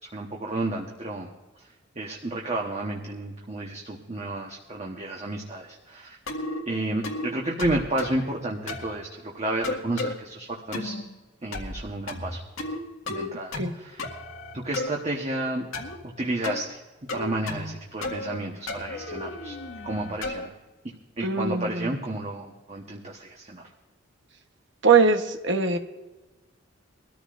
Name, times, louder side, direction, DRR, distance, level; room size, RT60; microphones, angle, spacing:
voice 1, 0.0-1.3 2.0-6.2 6.7-10.9 11.4-12.4 13.1-14.0 14.5-15.7 16.2-16.8 17.1-19.5 19.8-20.5 21.2-23.6, right 1 dB, 30° right, 0 dB, 1.1 m, -31 dB
sound 1, 6.3-6.6 7.0-7.3 7.6-8.2 8.7-8.9 9.6-10.1 10.7-11.0 11.5-11.8 12.1-12.8 13.1-13.7 14.0-14.9 15.7-16.0 16.4-16.6 17.1-17.7 18.0-18.4 18.7-20.5, left 2 dB, 85° left, 1.9 m, -33 dB
voice 2, 21.2-21.9 24.8-25.8, right 4 dB, 60° right, 5 dB, 1.1 m, -21 dB
22.5 x 14.0 x 2.5 m, 1.2 s
head